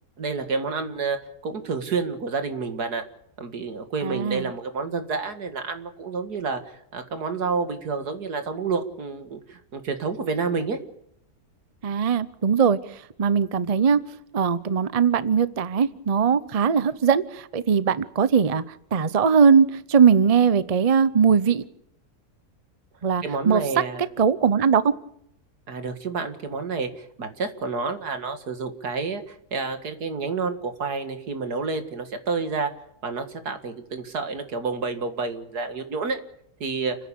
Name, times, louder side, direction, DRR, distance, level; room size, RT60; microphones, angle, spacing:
voice 1, 0.2-1.2 1.4-3.1 3.4-10.8 23.2-24.1 25.7-32.7 33.0-36.2 36.6-37.0, right 4 dB, 85° right, 8 dB, 2.5 m, -29 dB
voice 2, 4.0-4.5 11.8-12.8 13.2-14.0 14.3-18.6 18.9-21.6 23.0-23.6 24.2-24.9, right 6 dB, 35° right, 16 dB, 0.6 m, -20 dB
30.0 x 10.5 x 8.6 m, 0.75 s
omnidirectional pair, 1.6 m